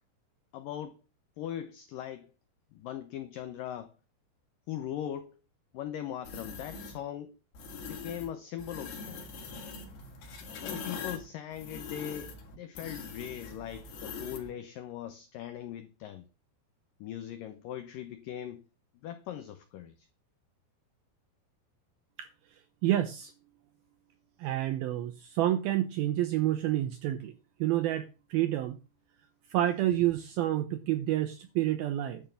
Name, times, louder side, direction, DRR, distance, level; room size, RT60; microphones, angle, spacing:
voice 1, 0.5-1.0 1.4-2.3 2.7-3.9 4.7-5.4 5.7-7.4 7.8-9.2 10.4-16.3 17.0-18.6 18.9-20.1, left 10 dB, 85° left, 1.9 m, -40 dB
sound 1, 6.2-7.0 7.5-8.3 8.6-14.5, left 4 dB, 65° left, 4.2 m, -42 dB
voice 2, 22.8-23.3 24.4-27.3 27.6-28.8 29.5-32.2, right 13 dB, 80° right, 2.2 m, -29 dB
11.5 x 5.5 x 6.9 m
omnidirectional pair, 5.1 m